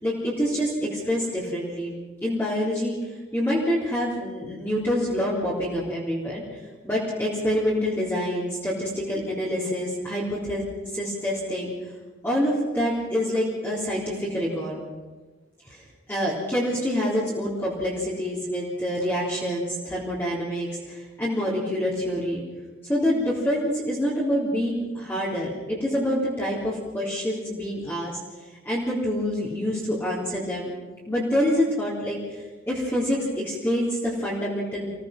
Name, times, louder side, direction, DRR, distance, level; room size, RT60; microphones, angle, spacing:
voice 1, 0.0-10.6 10.9-11.7 12.2-14.8 15.7-22.4 22.8-28.2 28.6-30.7 31.1-34.9, equal, 10° left, -7 dB, 3.6 m, -26 dB
25.5 x 17.5 x 6.0 m, 1.3 s
head